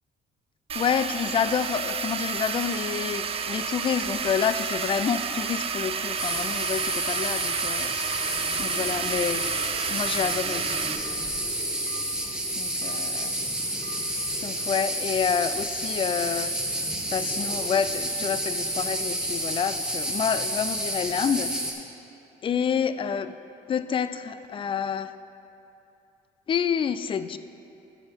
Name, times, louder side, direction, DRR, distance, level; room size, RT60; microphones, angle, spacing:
voice 1, 0.7-7.9 8.6-9.4 9.9-10.7 12.6-13.3 14.4-16.5 17.1-21.5 22.4-23.3 23.7-25.1 26.5-27.4, left 7 dB, 30° left, 12 dB, 0.4 m, -28 dB
sound 1, 0.7-11.0, right 6 dB, 35° right, 0.4 m, -30 dB
sound 2, 4.1-4.4 5.2-5.4 5.7-5.8 6.1-6.3 7.1-7.4 8.0-8.2 9.0-9.2 9.6-9.7 10.0-10.1 10.8-11.1 11.5-12.0 12.8-12.9 13.8-13.9, right 9 dB, 60° right, 1.0 m, -44 dB
sound 3, 6.2-21.7, right 1 dB, 5° right, 1.0 m, -30 dB
10.5 x 6.8 x 4.5 m, 2.8 s
cardioid pair, 110°, 17 cm